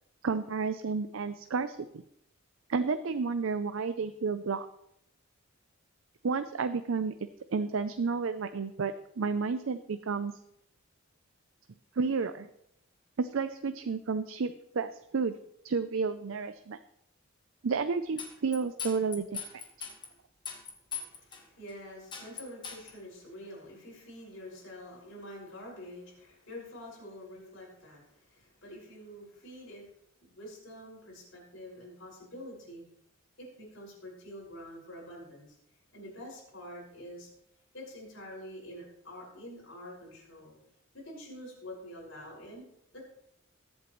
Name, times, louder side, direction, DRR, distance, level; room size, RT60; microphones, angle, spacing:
voice 1, 0.2-2.0 2.7-4.7 6.2-7.1 7.5-10.3 12.0-12.5 13.2-15.4 15.6-16.8 17.6-19.6, right 5 dB, 70° right, 10 dB, 0.5 m, -31 dB
sound 1, 18.2-20.1 20.5-21.4 21.7-21.8 22.1-22.9, left 6 dB, 20° left, 1.4 m, -39 dB
voice 2, 20.9-29.9 30.2-32.8 33.4-35.6 35.9-37.3 37.7-40.6 40.9-42.7 42.9-43.0, equal, 65° left, -3 dB, 5.7 m, -47 dB
21.5 x 8.1 x 3.1 m, 0.77 s
head